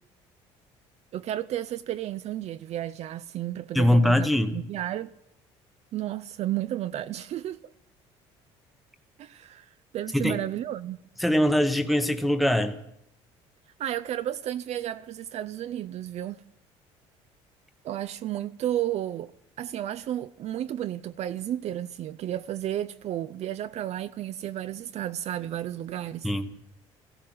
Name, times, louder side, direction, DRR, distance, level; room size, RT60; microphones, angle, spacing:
voice 1, 1.1-5.1 5.9-7.6 9.2-9.7 9.9-11.0 13.8-16.4 17.8-19.3 19.6-26.3, right 12 dB, 55° right, 0.5 m, -32 dB
voice 2, 3.7-4.6 10.1-10.4 11.2-12.8 26.2-26.5, left 1 dB, ahead, 1.0 m, -22 dB
14.5 x 13.0 x 7.7 m
supercardioid pair, 80°, 13 cm